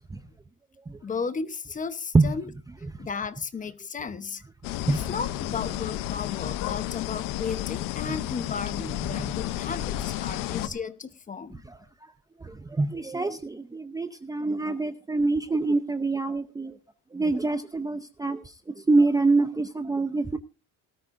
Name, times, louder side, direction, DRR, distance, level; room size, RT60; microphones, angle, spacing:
voice 1, 1.0-2.5 3.0-4.4 4.9-11.6, left 5 dB, 25° left, 0.9 m, -34 dB
sound 1, 4.6-10.7, left 14 dB, 85° left, 0.8 m, -32 dB
voice 2, 12.4-16.7 17.1-18.4 18.9-20.4, right 3 dB, 10° right, 0.6 m, -25 dB
18.5 x 13.0 x 2.6 m
cardioid pair, 140°, 32 cm